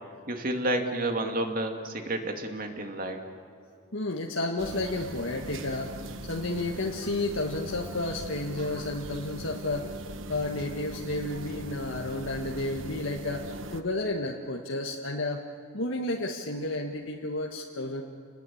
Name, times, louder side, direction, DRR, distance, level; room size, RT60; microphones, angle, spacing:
voice 1, 0.3-3.2, right 1 dB, 45° right, 4 dB, 2.5 m, -30 dB
voice 2, 3.9-5.9 6.3-9.9 10.3-13.4 13.7-15.4 15.7-18.0, left 2 dB, 70° left, 1 dB, 1.6 m, -31 dB
sound 1, 4.6-13.8, right 1 dB, 70° right, 1.2 m, -40 dB
29.5 x 20.5 x 8.7 m, 2.3 s
head